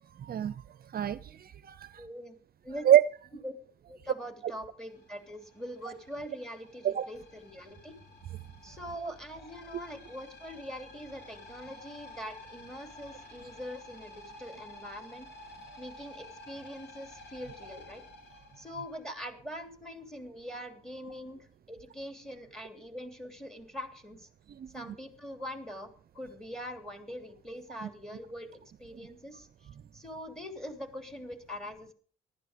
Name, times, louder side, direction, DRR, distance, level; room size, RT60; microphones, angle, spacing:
voice 1, 0.2-0.6 0.9-2.0 2.8-3.0 6.8-7.1 24.5-25.0 27.8-27.9, right 11 dB, 50° right, 16 dB, 0.6 m, -26 dB
voice 2, 2.0-2.4 2.6-2.9 3.4-3.5 3.9-7.9 8.6-15.3 15.8-18.0 18.6-24.3 24.7-28.5 28.8-29.5 29.9-31.9, equal, 5° left, 6 dB, 3.0 m, -43 dB
sound 1, 4.9-19.4, left 2 dB, 60° left, 3.8 m, -52 dB
15.0 x 12.0 x 5.1 m, 0.43 s
cardioid pair, 90°, 20 cm